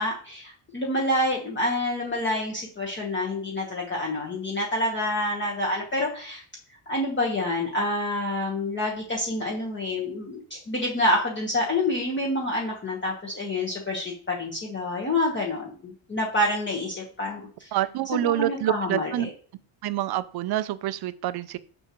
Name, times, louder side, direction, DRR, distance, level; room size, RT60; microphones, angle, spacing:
voice 1, 0.0-6.4 6.9-17.7 18.1-19.3, left 1 dB, 25° left, -2 dB, 1.2 m, -27 dB
voice 2, 17.7-19.3 19.8-21.6, right 13 dB, 55° right, 14 dB, 0.5 m, -27 dB
6.4 x 6.2 x 3.0 m, 0.42 s
cardioid pair, 165°, 48 cm